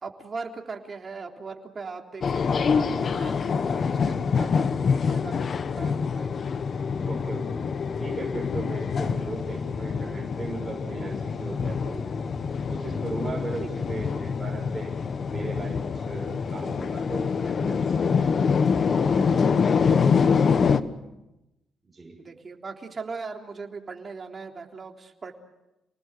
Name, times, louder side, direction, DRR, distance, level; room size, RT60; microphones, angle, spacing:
voice 1, 0.0-6.4 13.6-13.7 22.2-25.3, right 4 dB, 35° right, 2 dB, 3.5 m, -39 dB
sound 1, 2.2-20.8, left 6 dB, 50° left, 1.3 m, -25 dB
voice 2, 3.6-3.9 7.0-7.7 8.0-12.0 12.7-15.0 15.3-18.6 19.1-20.9 21.8-22.2, right 2 dB, 20° right, -2 dB, 6.3 m, -37 dB
29.0 x 19.5 x 8.0 m, 0.95 s
cardioid pair, 100°, 0 cm